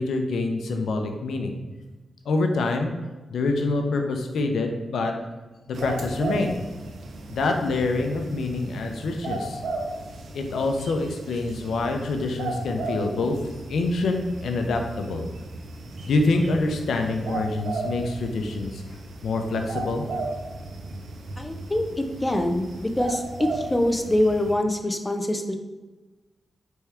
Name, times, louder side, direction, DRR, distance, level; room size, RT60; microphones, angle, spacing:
voice 1, 0.0-1.5 2.3-2.9 3.3-5.1 5.7-6.6 7.3-9.6 10.3-13.4 13.7-15.2 16.1-18.8 19.2-20.1, left 3 dB, 85° left, 4 dB, 0.5 m, -26 dB
sound 1, 5.7-24.5, right 2 dB, 80° right, 0.5 m, -35 dB
voice 2, 21.4-25.6, left 1 dB, 15° left, 5 dB, 0.4 m, -24 dB
4.3 x 3.5 x 3.4 m, 1.2 s
wide cardioid pair, 125°, 0 cm